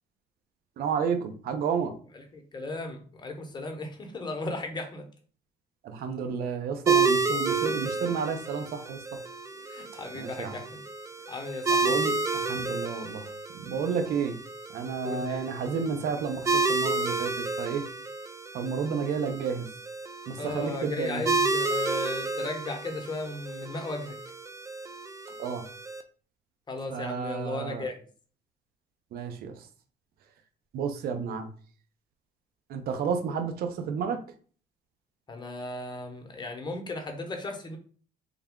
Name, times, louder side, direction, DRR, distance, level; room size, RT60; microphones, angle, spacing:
voice 1, 0.8-1.9 5.8-9.0 10.1-10.5 11.8-13.2 13.7-14.4 14.7-17.3 17.6-17.8 18.5-19.7 20.3-21.2 25.4-25.6 26.9-27.9 29.1-29.5 30.7-31.5 32.7-34.2, right 6 dB, 65° right, 6 dB, 0.6 m, -31 dB
voice 2, 2.1-5.0 9.7-10.8 11.3-11.9 15.0-15.5 20.4-24.2 26.7-27.9 35.3-37.8, left 2 dB, 25° left, 3 dB, 0.9 m, -36 dB
sound 1, 6.9-26.0, right 4 dB, 20° right, 0.3 m, -31 dB
3.4 x 2.3 x 3.6 m, 0.43 s
cardioid pair, 110°, 17 cm